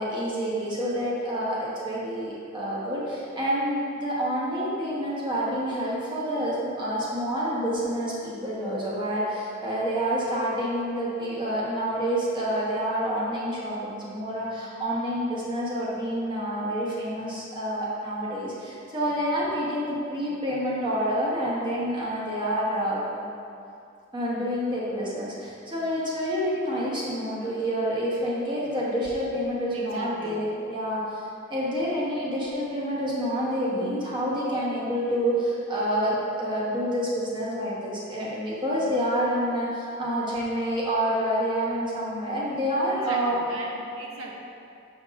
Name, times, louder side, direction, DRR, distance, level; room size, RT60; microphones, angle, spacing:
voice 1, 0.0-23.3 24.1-43.4, equal, 25° right, -7 dB, 1.1 m, -28 dB
voice 2, 29.7-30.4 42.9-44.4, right 2 dB, 90° right, -1 dB, 0.7 m, -38 dB
6.7 x 5.7 x 2.5 m, 2.6 s
head